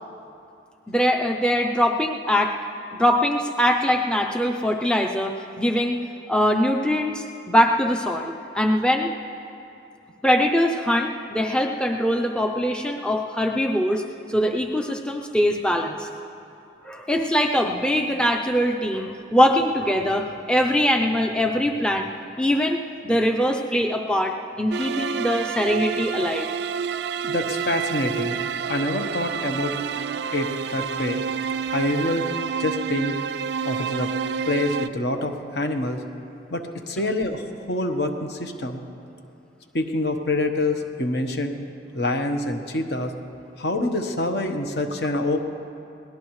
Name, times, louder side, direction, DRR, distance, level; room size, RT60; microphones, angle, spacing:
voice 1, 0.9-2.6 2.9-6.0 6.3-9.1 10.2-14.0 14.3-16.1 16.8-22.1 22.4-22.8 23.0-26.5, equal, 5° left, 2 dB, 0.5 m, -22 dB
sound 1, 24.7-34.9, right 6 dB, 60° right, 0.3 m, -29 dB
voice 2, 27.2-28.4 28.7-29.8 30.3-31.2 31.7-32.2 32.6-33.1 33.6-34.1 34.5-36.0 36.5-38.8 39.7-41.6 41.9-43.1 43.6-45.4, left 1 dB, 60° left, 5 dB, 1.1 m, -26 dB
22.0 x 18.0 x 3.2 m, 2.7 s
head